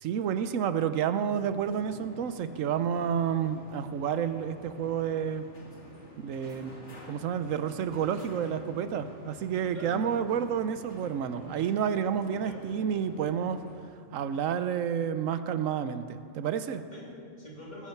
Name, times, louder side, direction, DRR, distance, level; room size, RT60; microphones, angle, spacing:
voice 1, 0.0-5.5 6.2-13.6 14.1-16.8, right 8 dB, 90° right, 11 dB, 1.1 m, -30 dB
sound 1, 1.3-13.7, left 1 dB, 65° left, 2.6 m, -49 dB
voice 2, 9.7-10.1 12.4-12.6 16.9-17.9, left 3 dB, 35° left, -5 dB, 3.4 m, -45 dB
19.5 x 11.5 x 4.5 m, 2.5 s
omnidirectional pair, 1.3 m